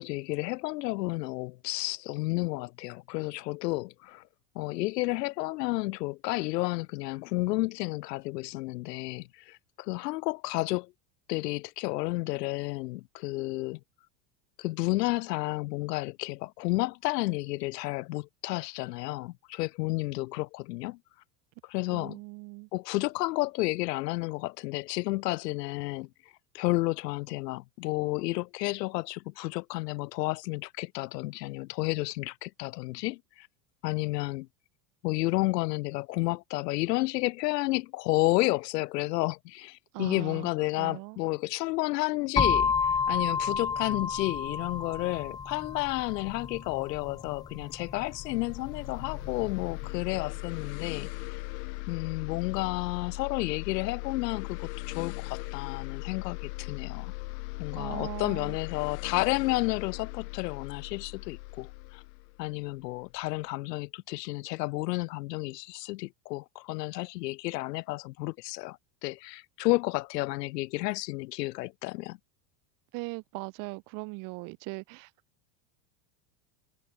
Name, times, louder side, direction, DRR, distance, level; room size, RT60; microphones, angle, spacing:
voice 1, 0.0-4.2 4.5-10.9 11.3-13.8 14.6-21.0 21.6-22.2 22.7-26.1 26.5-33.5 33.8-34.5 35.0-51.1 51.9-57.1 57.6-62.0 62.4-72.2, left 20 dB, 90° left, 2.5 m, -31 dB
voice 2, 21.9-22.7 39.9-40.5 40.8-41.2 57.7-58.6 72.9-75.1, right 28 dB, 40° right, 1.5 m, -39 dB
sound 1, 42.4-50.2, left 5 dB, 10° left, 0.6 m, -31 dB
sound 2, 47.7-63.2, left 27 dB, 60° left, 0.8 m, -39 dB
cardioid pair, 175°, 47 cm